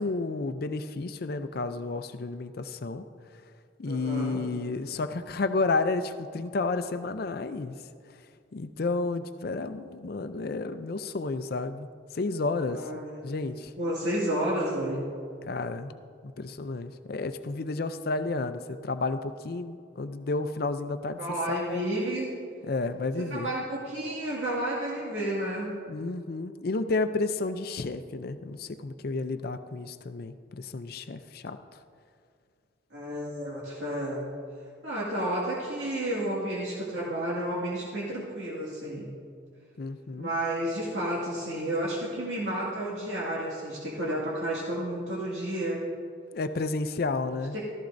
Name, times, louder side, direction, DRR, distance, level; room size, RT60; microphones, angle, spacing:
voice 1, 0.0-3.0 3.8-7.8 8.5-11.9 12.1-12.9 13.2-13.7 15.4-21.2 21.5-21.8 22.7-23.5 25.9-31.6 39.8-40.3 46.3-47.6, left 3 dB, 55° left, 10 dB, 0.5 m, -31 dB
voice 2, 3.8-4.4 12.7-13.2 13.8-15.0 21.2-22.3 23.2-25.7 32.9-34.2 34.8-39.1 40.2-45.8 47.5-47.6, right 1 dB, 80° right, -6 dB, 2.1 m, -31 dB
14.5 x 14.0 x 2.6 m, 2.3 s
head